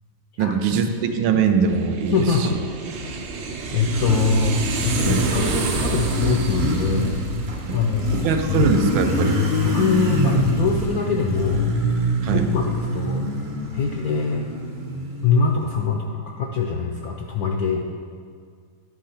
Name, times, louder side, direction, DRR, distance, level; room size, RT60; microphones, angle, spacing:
voice 1, 0.4-2.2 5.1-5.2 7.7-7.8 8.1-9.4 12.2-12.4, right 6 dB, 80° right, 6 dB, 1.4 m, -22 dB
sound 1, 1.7-10.2, right 4 dB, 65° right, 1.3 m, -30 dB
voice 2, 2.1-2.6 3.7-7.2 7.7-8.7 9.6-11.7 12.3-12.7 12.9-13.3 13.7-14.4 15.2-17.8, left 4 dB, 75° left, 1 dB, 0.8 m, -23 dB
Motorcycle, 3.0-15.7, left 1 dB, 50° right, 0.8 m, -25 dB
10.5 x 3.7 x 5.6 m, 2.1 s
omnidirectional pair, 2.2 m